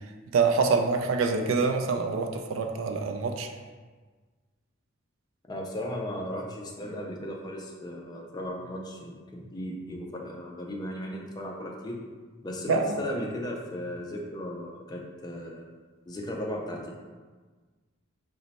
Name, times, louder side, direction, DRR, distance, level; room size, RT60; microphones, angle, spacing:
voice 1, 0.3-3.5 12.7-13.0, right 4 dB, 75° right, 5 dB, 0.3 m, -25 dB
voice 2, 5.5-12.0 12.4-15.6 16.1-16.9, equal, 20° left, 0 dB, 0.3 m, -36 dB
3.0 x 2.1 x 4.0 m, 1.4 s
head